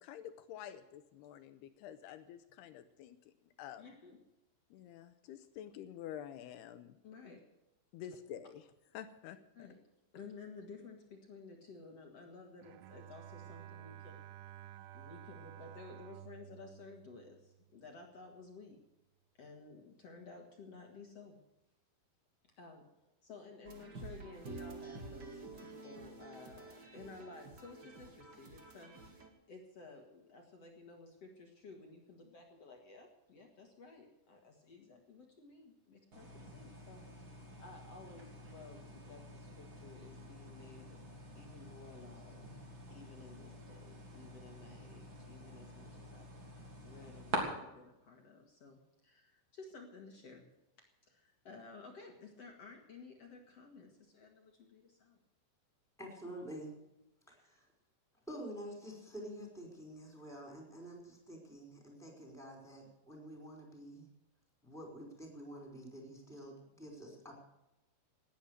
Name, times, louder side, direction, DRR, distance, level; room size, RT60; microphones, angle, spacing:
voice 1, 0.0-3.8 4.7-7.0 7.9-8.6 8.9-9.7, left 10 dB, 80° left, 11 dB, 2.5 m, -49 dB
voice 2, 3.8-4.2 7.0-7.5 9.6-9.8 10.1-14.2 14.9-18.8 19.4-21.4 22.4-37.0 37.6-41.0 41.4-42.6 42.9-46.3 46.8-50.5 50.8-55.2, left 4 dB, 50° left, 2 dB, 2.1 m, -54 dB
Bowed string instrument, 12.6-17.9, right 12 dB, 80° right, 2.6 m, -53 dB
sound 1, 23.6-29.3, right 3 dB, 45° right, 1.3 m, -50 dB
sound 2, 36.1-47.4, right 2 dB, 30° right, 3.2 m, -48 dB
voice 3, 56.0-56.7 57.3-57.7 58.3-64.1 64.6-67.3, right 1 dB, ahead, 1 dB, 4.4 m, -48 dB
18.5 x 10.5 x 6.6 m, 0.94 s
omnidirectional pair, 5.4 m